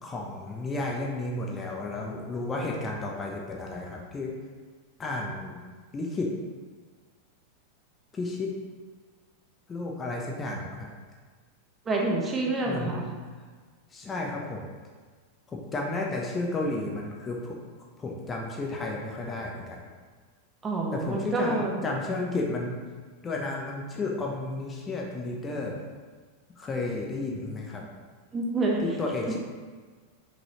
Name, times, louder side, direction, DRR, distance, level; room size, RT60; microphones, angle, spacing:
voice 1, 0.0-4.3 5.0-5.6 5.9-6.3 8.1-8.5 9.7-10.9 12.6-13.0 13.9-14.7 15.5-17.6 18.0-19.8 20.9-22.8 23.2-25.8 26.6-27.9 28.8-29.4, left 2 dB, 20° left, -1 dB, 0.9 m, -32 dB
voice 2, 11.9-13.0 20.6-21.7 28.3-28.8, right 2 dB, 20° right, -1 dB, 1.1 m, -27 dB
6.0 x 5.3 x 3.1 m, 1.5 s
figure-of-eight pair, 90°, 0 cm